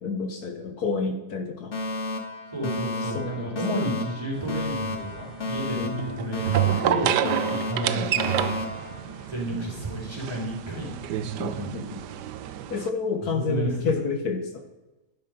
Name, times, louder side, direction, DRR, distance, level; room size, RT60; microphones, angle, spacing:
voice 1, 0.0-1.8 3.0-3.6 5.8-6.5 6.9-7.5 7.8-8.1 11.4-12.1 12.7-14.6, left 4 dB, 65° left, 6 dB, 1.6 m, -30 dB
Alarm, 1.7-9.7, left 2 dB, 45° left, 1.9 m, -33 dB
voice 2, 2.5-7.1 7.5-8.5 9.3-10.9 11.2-11.8 13.3-13.7, right 1 dB, 15° right, -2 dB, 4.2 m, -32 dB
sound 1, 4.3-12.9, right 11 dB, 85° right, 1.3 m, -29 dB
12.0 x 11.0 x 5.3 m, 1.1 s
omnidirectional pair, 1.8 m